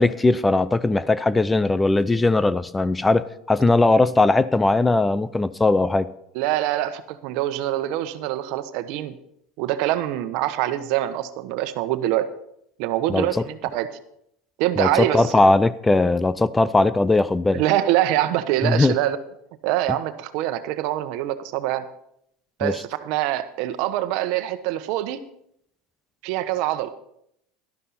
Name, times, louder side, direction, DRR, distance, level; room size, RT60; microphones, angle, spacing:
voice 1, 0.0-6.1 13.1-13.5 14.8-17.6 18.6-18.9 22.6-22.8, left 2 dB, 10° left, 17 dB, 0.5 m, -19 dB
voice 2, 6.3-9.1 9.6-12.3 12.8-13.9 14.6-15.3 17.5-19.2 19.6-21.9 22.6-25.2 26.2-26.9, right 13 dB, 65° right, 11 dB, 1.1 m, -24 dB
12.5 x 12.0 x 4.2 m, 0.74 s
supercardioid pair, 110°, 0 cm